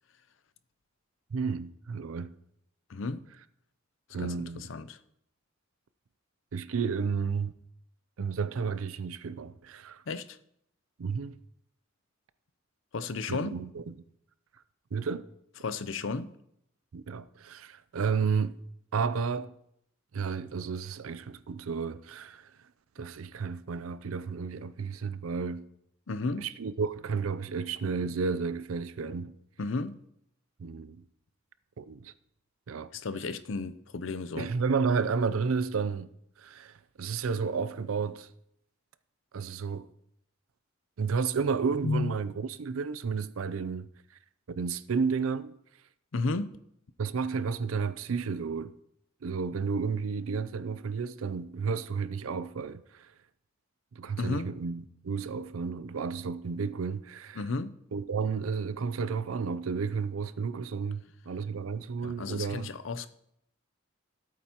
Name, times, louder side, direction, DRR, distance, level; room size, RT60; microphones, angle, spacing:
voice 1, 1.3-2.3 4.1-4.7 6.5-7.5 8.2-10.0 11.0-11.4 13.3-13.9 14.9-15.3 16.9-18.6 18.9-19.5 20.1-22.5 23.0-25.7 26.4-29.3 30.6-31.0 31.8-32.1 32.7-33.0 34.3-36.1 36.4-38.3 39.3-39.9 41.0-43.9 44.5-45.5 47.0-48.7 49.2-53.1 54.0-57.4 57.9-62.7, right 5 dB, 85° right, 0.5 m, -32 dB
voice 2, 2.9-3.3 4.2-5.0 10.1-10.4 12.9-13.6 15.6-16.3 26.1-26.5 29.6-30.0 32.9-34.5 41.8-42.2 46.1-46.6 54.2-54.5 57.4-57.8 62.0-63.1, left 3 dB, 65° left, 0.6 m, -33 dB
14.5 x 8.5 x 2.9 m
head